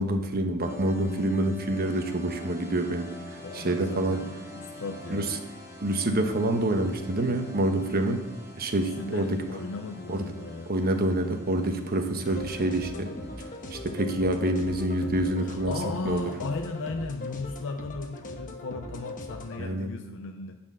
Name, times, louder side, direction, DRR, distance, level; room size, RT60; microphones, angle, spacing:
voice 1, 0.0-4.2 5.1-5.3 5.8-8.3 8.6-9.4 10.1-10.2 10.7-13.1 13.7-15.7 16.0-16.3 19.6-19.9, right 1 dB, 45° right, 6 dB, 1.0 m, -27 dB
sound 1, 0.6-17.5, left 1 dB, 10° right, 2.1 m, -47 dB
voice 2, 3.4-5.3 8.7-10.7 15.4-20.6, left 3 dB, 60° left, 5 dB, 0.5 m, -36 dB
sound 2, 12.2-19.6, left 1 dB, 35° left, 1.1 m, -40 dB
10.5 x 4.4 x 7.4 m, 1.1 s
head